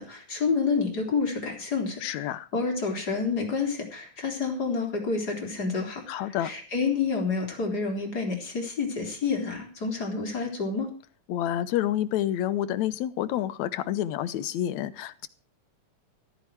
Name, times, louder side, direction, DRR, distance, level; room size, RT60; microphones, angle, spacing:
voice 1, 0.0-2.2 2.5-10.9, left 4 dB, 30° left, 4.0 m, -29 dB
voice 2, 2.0-2.5 6.1-6.5 11.3-15.3, left 12 dB, 75° left, 2.1 m, -28 dB
14.0 x 13.5 x 4.7 m
omnidirectional pair, 3.4 m